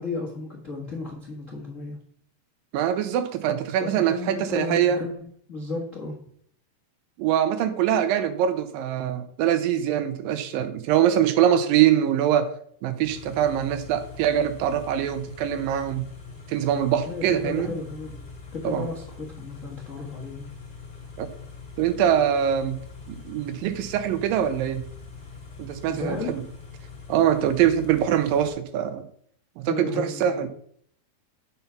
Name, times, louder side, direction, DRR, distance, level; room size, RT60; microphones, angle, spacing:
voice 1, 0.0-2.0 3.8-5.2 5.5-6.2 17.1-18.2 18.5-20.5 25.9-26.3 29.7-30.5, left 3 dB, 65° left, -1 dB, 0.7 m, -34 dB
voice 2, 2.7-5.0 7.2-12.5 12.8-16.0 16.5-17.7 18.6-18.9 21.2-21.3 21.8-22.8 23.1-24.8 25.6-26.4 27.1-29.0 29.6-30.5, right 10 dB, 80° right, 11 dB, 2.4 m, -23 dB
Car / Idling, 13.0-28.5, left 5 dB, 15° left, 1.9 m, -43 dB
8.0 x 5.5 x 5.8 m, 0.63 s
omnidirectional pair, 4.1 m